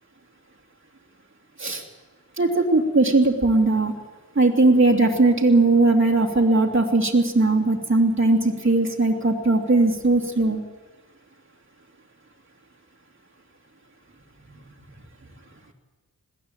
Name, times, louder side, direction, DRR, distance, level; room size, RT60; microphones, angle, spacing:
voice 1, 2.4-3.9 4.3-10.6, right 2 dB, 35° right, 0 dB, 2.7 m, -19 dB
21.0 x 14.5 x 8.9 m, 1.3 s
cardioid pair, 75°, 37 cm